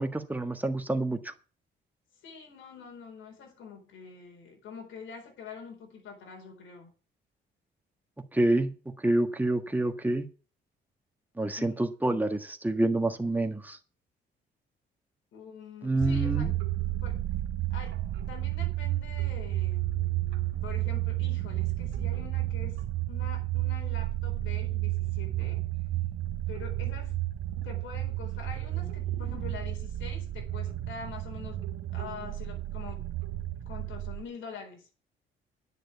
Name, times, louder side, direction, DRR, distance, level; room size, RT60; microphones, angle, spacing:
voice 1, 0.0-1.3 8.3-10.3 11.4-13.8 15.8-16.5, right 2 dB, 10° right, 5 dB, 1.6 m, -28 dB
voice 2, 2.2-6.9 11.6-11.7 15.3-16.6 17.0-17.2 17.7-18.0 18.3-22.8 23.1-25.6 26.5-27.2 27.6-31.7 31.9-33.0 33.6-34.9, left 6 dB, 75° left, 3 dB, 4.3 m, -45 dB
sound 1, 16.0-34.2, right 15 dB, 90° right, 1.4 m, -32 dB
10.5 x 6.5 x 8.5 m, 0.35 s
cardioid pair, 90°, 20 cm